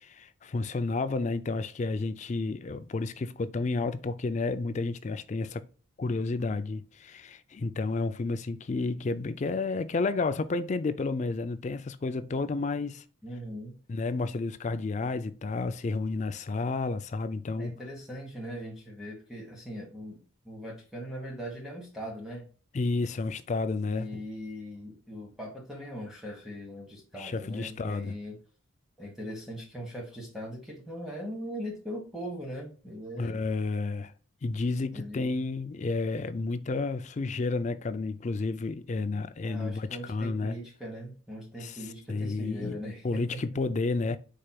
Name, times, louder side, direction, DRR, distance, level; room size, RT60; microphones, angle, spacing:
voice 1, 0.0-5.6 6.0-13.0 13.9-17.7 22.7-24.2 27.2-28.1 33.2-34.1 34.4-40.6 41.6-41.7 42.1-42.8 43.0-44.2, left 3 dB, 35° left, 0.3 m, -31 dB
voice 2, 13.2-13.8 17.6-20.2 20.4-22.5 23.9-28.4 29.0-33.5 34.9-35.4 39.4-43.6, equal, ahead, 1.2 m, -40 dB
5.0 x 4.3 x 2.2 m
head